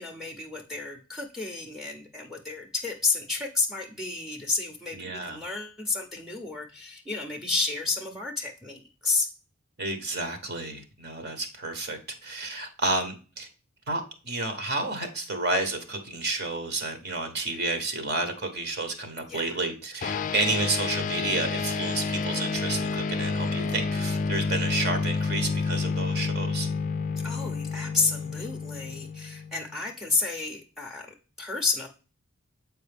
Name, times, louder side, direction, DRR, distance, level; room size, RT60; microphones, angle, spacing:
voice 1, 0.0-9.3 19.3-19.6 27.2-31.1 31.4-31.9, left 4 dB, ahead, 0.7 m, -31 dB
voice 2, 4.9-5.4 9.8-13.5 13.9-26.7, right 2 dB, 50° right, 1.2 m, -31 dB
sound 1, 20.0-29.7, left 4 dB, 40° left, 0.4 m, -29 dB
7.7 x 4.6 x 3.4 m
head